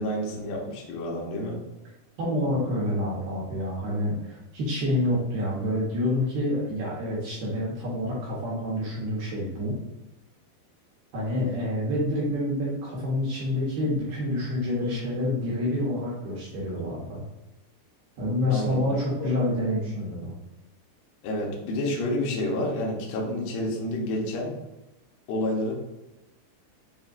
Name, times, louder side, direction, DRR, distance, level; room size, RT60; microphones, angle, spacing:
voice 1, 0.0-1.6 18.5-18.8 19.2-19.3 21.2-24.5 25.3-25.7, left 1 dB, 90° left, -2 dB, 1.9 m, -29 dB
voice 2, 2.2-9.8 11.1-17.2 18.2-20.3, left 1 dB, 75° right, -6 dB, 2.1 m, -28 dB
6.9 x 2.7 x 2.5 m, 0.96 s
omnidirectional pair, 5.2 m